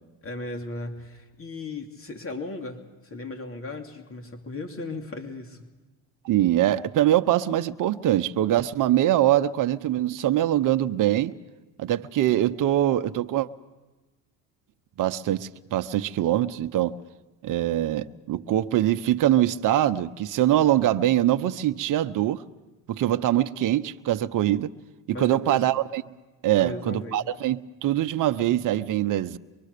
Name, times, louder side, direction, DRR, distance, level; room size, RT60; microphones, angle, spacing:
voice 1, 0.2-5.7 25.1-25.7 26.6-27.3, left 2 dB, 35° left, 2.9 m, -36 dB
voice 2, 6.2-11.3 11.8-13.5 15.0-17.0 17.4-22.4 22.9-24.7 25.1-26.0 26.4-29.4, right 13 dB, 50° right, 1.0 m, -23 dB
24.0 x 23.5 x 6.8 m
supercardioid pair, 90°, 40 cm